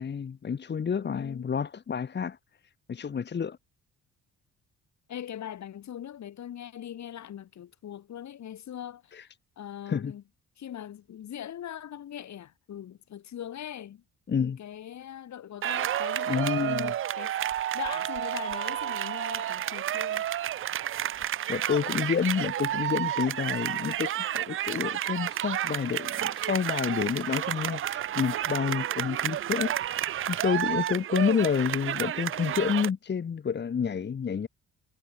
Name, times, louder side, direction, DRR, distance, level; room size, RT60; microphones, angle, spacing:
voice 1, 0.0-2.4 2.9-3.6 9.1-9.2 9.9-10.1 14.3-14.6 16.3-16.9 21.5-29.9 30.3-34.5, left 6 dB, 35° left, 1.2 m, -29 dB
voice 2, 1.0-1.4 5.1-10.2 10.6-14.0 14.4-17.4 17.7-20.3, left 10 dB, 65° left, 5.7 m, -41 dB
sound 1, 15.6-32.9, right 11 dB, 45° right, 0.4 m, -31 dB
cardioid pair, 90°, 30 cm